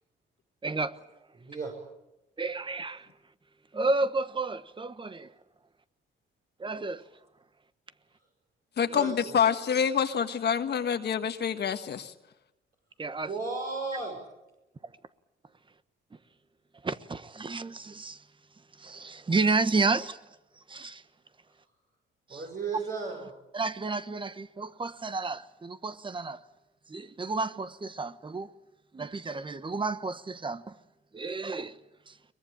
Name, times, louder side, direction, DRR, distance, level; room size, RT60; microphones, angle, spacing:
voice 1, 0.6-1.0 2.4-3.1 3.7-5.3 6.6-7.0 13.0-13.3 16.8-18.2 18.8-20.2 20.7-21.0 22.3-22.4 23.5-26.4 26.9-28.5 28.9-30.7 31.1-31.8 32.1-32.2, right 3 dB, 25° right, 1.2 m, -31 dB
voice 2, 1.4-1.7 8.9-9.4 13.2-14.2 22.3-23.3, right 3 dB, 45° right, 6.5 m, -35 dB
voice 3, 8.8-12.1, left 7 dB, 55° left, 1.5 m, -27 dB
23.0 x 20.5 x 8.8 m
cardioid pair, 90°, 20 cm